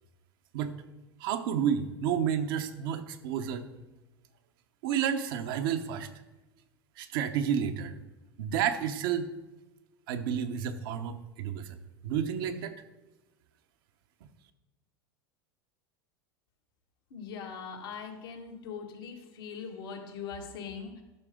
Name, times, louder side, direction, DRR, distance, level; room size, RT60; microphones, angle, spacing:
voice 1, 1.2-3.7 4.8-6.1 7.0-8.0 8.4-9.3 10.1-11.8 12.0-12.8, right 8 dB, 65° right, 8 dB, 0.9 m, -30 dB
voice 2, 17.1-21.0, left 6 dB, 75° left, 1 dB, 1.8 m, -41 dB
12.0 x 6.7 x 3.7 m, 1.1 s
hypercardioid pair, 95°, 13 cm